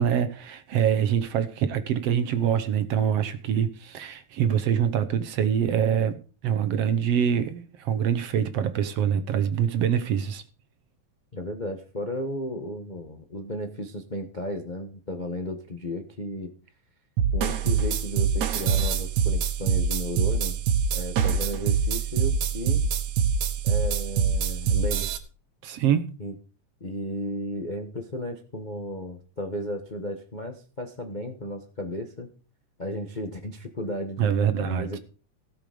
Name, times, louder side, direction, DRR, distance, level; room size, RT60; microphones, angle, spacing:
voice 1, 0.0-10.4 25.6-26.2 34.2-35.0, right 8 dB, 65° right, 1.8 m, -25 dB
voice 2, 11.3-16.5 17.3-20.6 20.9-22.9 23.6-25.1 26.2-26.3 26.8-32.3 32.8-35.0, left 1 dB, 45° left, 0.5 m, -34 dB
sound 1, 17.2-25.2, right 6 dB, 85° right, 2.6 m, -25 dB
17.0 x 7.0 x 5.1 m
omnidirectional pair, 3.3 m